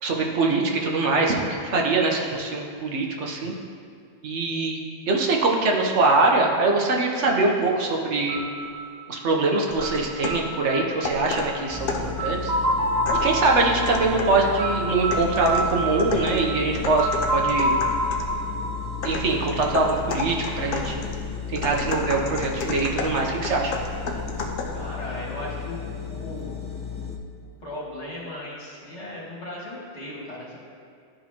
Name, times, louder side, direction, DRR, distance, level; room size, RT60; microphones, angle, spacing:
voice 1, 0.0-3.5 4.2-4.8 5.1-8.4 9.1-11.9 12.2-12.5 13.2-17.7 19.0-21.0 21.5-23.7, right 3 dB, 75° right, 0 dB, 1.2 m, -23 dB
sound 1, 8.3-20.1, right 1 dB, 40° right, 1.0 m, -29 dB
sound 2, 9.7-10.5 11.0-12.2 13.0-14.4 15.1-18.4 19.0-24.8, left 3 dB, 55° left, 0.8 m, -33 dB
sound 3, 11.7-27.2, left 6 dB, 10° left, 0.4 m, -34 dB
voice 2, 24.7-25.8 26.1-26.6 27.6-30.6, left 1 dB, 75° left, -5 dB, 1.9 m, -37 dB
11.5 x 4.4 x 2.9 m, 2.4 s
omnidirectional pair, 1.2 m